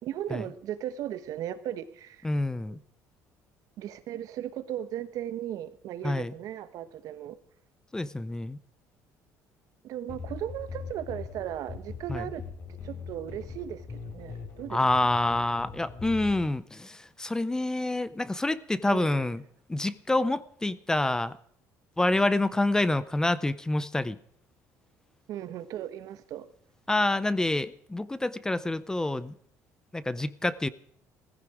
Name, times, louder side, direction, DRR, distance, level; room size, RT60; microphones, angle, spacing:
voice 1, 0.0-2.3 2.7-2.8 3.8-7.4 9.8-12.4 12.8-14.8 18.9-19.2 25.3-26.5, right 11 dB, 65° right, 13 dB, 1.3 m, -37 dB
voice 2, 2.2-2.8 6.0-6.3 7.9-8.6 12.1-12.2 14.7-19.4 19.7-21.4 22.0-24.2 26.9-29.3 29.9-30.7, left 2 dB, 10° left, 17 dB, 0.5 m, -27 dB
sound 1, 10.1-16.5, left 5 dB, 45° left, 4.2 m, -41 dB
17.0 x 15.0 x 4.9 m, 0.63 s
cardioid pair, 130°, 6 cm